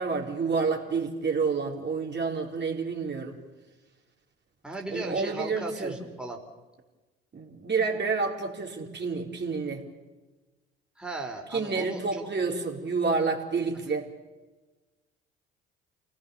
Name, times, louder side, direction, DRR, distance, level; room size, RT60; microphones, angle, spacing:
voice 1, 0.0-3.4 4.9-6.0 7.3-9.8 11.5-14.1, right 4 dB, 35° right, 0 dB, 4.5 m, -29 dB
voice 2, 4.6-6.4 11.0-12.2, right 2 dB, 5° right, 1 dB, 4.4 m, -37 dB
28.5 x 18.5 x 7.2 m, 1.2 s
hypercardioid pair, 50°, 30 cm